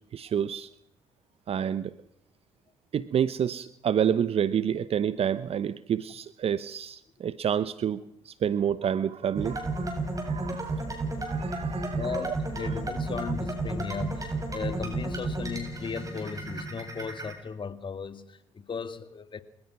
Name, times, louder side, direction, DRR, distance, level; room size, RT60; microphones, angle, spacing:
voice 1, 0.1-0.7 1.5-2.0 2.9-10.8 11.2-12.3, right 8 dB, 55° right, 16 dB, 0.8 m, -29 dB
sound 1, 9.3-17.3, right 2 dB, 30° right, 8.0 m, -32 dB
voice 2, 11.9-19.4, left 5 dB, 45° left, 10 dB, 2.1 m, -36 dB
28.0 x 16.0 x 6.0 m, 0.73 s
hypercardioid pair, 55°, 12 cm